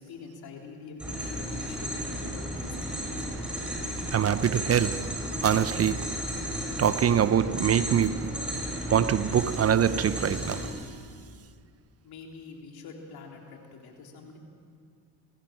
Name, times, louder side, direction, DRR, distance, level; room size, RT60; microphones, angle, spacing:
voice 1, 0.0-3.6 12.0-14.4, left 4 dB, 70° left, 3.6 m, -45 dB
sound 1, 1.0-10.7, equal, 5° right, 7.7 m, -34 dB
voice 2, 4.1-6.2 6.8-8.5 8.9-10.8, right 9 dB, 40° right, 0.7 m, -24 dB
24.0 x 16.0 x 7.5 m
supercardioid pair, 75°, 38 cm